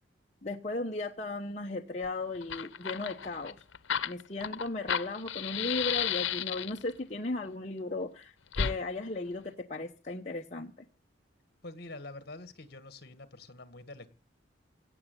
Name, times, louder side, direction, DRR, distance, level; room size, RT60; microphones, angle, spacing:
voice 1, 0.4-3.6 4.0-10.7, left 2 dB, 35° left, 1.1 m, -36 dB
Fire, 2.0-2.1 2.4-6.9 8.5-8.8, left 8 dB, 85° left, 0.9 m, -33 dB
voice 2, 11.6-14.2, left 2 dB, 55° left, 1.9 m, -46 dB
17.5 x 7.1 x 9.8 m
head